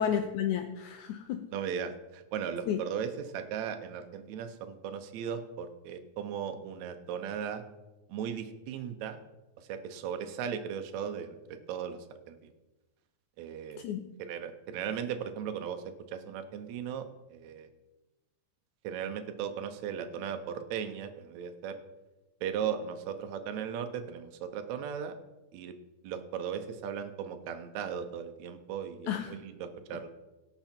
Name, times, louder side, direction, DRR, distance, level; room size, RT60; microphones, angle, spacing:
voice 1, 0.0-1.5 2.7-2.8 13.8-14.1 29.1-29.4, left 9 dB, 90° left, 8 dB, 1.6 m, -32 dB
voice 2, 1.5-7.6 8.1-9.2 9.7-12.0 12.3-12.4 13.4-13.8 14.2-17.0 17.3-17.7 18.8-21.8 22.4-25.1 25.5-25.7 26.0-30.1, right 8 dB, 70° right, 8 dB, 1.8 m, -37 dB
17.5 x 6.9 x 4.4 m, 1.1 s
omnidirectional pair, 4.1 m